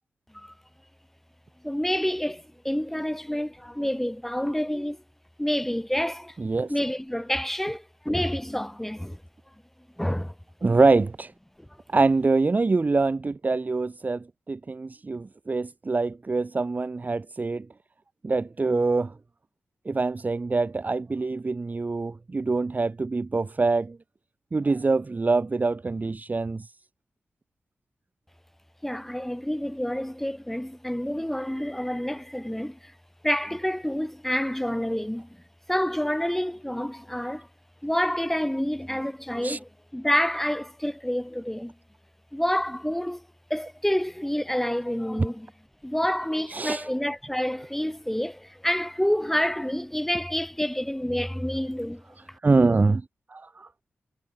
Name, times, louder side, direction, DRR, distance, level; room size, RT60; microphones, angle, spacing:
voice 1, 1.6-5.0 5.4-6.4 6.7-9.2 10.0-10.3 11.6-11.7 28.8-32.9 33.2-35.3 35.7-37.5 37.8-41.7 42.3-45.5 45.8-52.0, equal, 5° left, 7.8 m, -28 dB
voice 2, 10.6-11.3 11.9-17.7 18.2-19.1 19.9-24.0 24.5-26.7 39.4-39.6 46.5-46.9 52.4-53.0 53.3-53.7, right 3 dB, 40° right, 0.9 m, -24 dB
cardioid pair, 50°, 4 cm